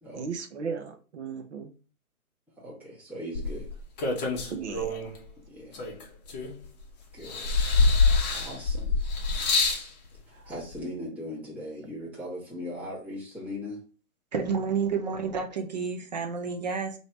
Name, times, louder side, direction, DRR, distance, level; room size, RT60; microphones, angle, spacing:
voice 1, 0.1-1.7 4.5-5.0, right 5 dB, 50° right, 0.9 m, -36 dB
voice 2, 2.6-3.7 5.5-5.9 7.1-7.6 8.3-9.0 10.3-13.8, left 1 dB, 5° right, 1.1 m, -39 dB
sound 1, 3.3-5.2 5.7-6.8 7.2-9.9 10.8-10.9, left 3 dB, 30° left, 0.9 m, -25 dB
voice 3, 14.3-17.0, right 5 dB, 30° right, 0.5 m, -30 dB
3.1 x 2.8 x 4.3 m
hypercardioid pair, 150°, 44 cm